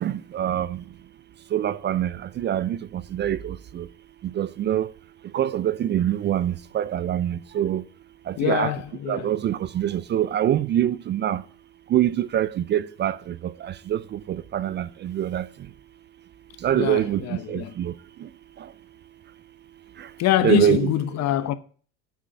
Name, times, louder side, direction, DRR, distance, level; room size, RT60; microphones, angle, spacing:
voice 1, 0.0-0.7 1.5-2.1 2.4-2.8 3.1-3.8 4.4-4.9 5.3-7.8 8.4-8.7 9.1-11.4 11.9-13.2 13.9-14.0 14.5-15.4 16.6-17.2 17.5-17.9 20.4-20.9, right 11 dB, 30° right, 0.5 m, -24 dB
voice 2, 8.4-9.3 16.7-17.7 20.2-21.5, left 13 dB, 50° left, 1.0 m, -24 dB
8.4 x 6.2 x 6.8 m
supercardioid pair, 100°, 35 cm